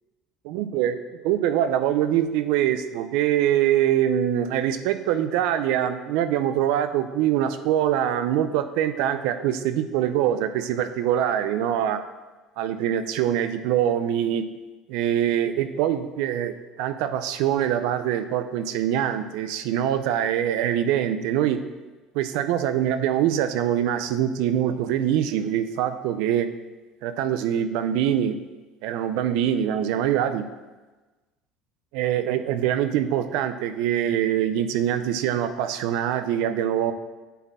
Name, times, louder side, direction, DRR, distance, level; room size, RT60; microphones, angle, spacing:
voice 1, 0.5-12.0 12.6-14.5 14.9-21.6 22.1-26.5 27.0-28.4 28.8-30.4 31.9-36.9, right 10 dB, 75° right, 11 dB, 0.5 m, -24 dB
9.1 x 4.3 x 4.2 m, 1.2 s
cardioid pair, 125°, 0 cm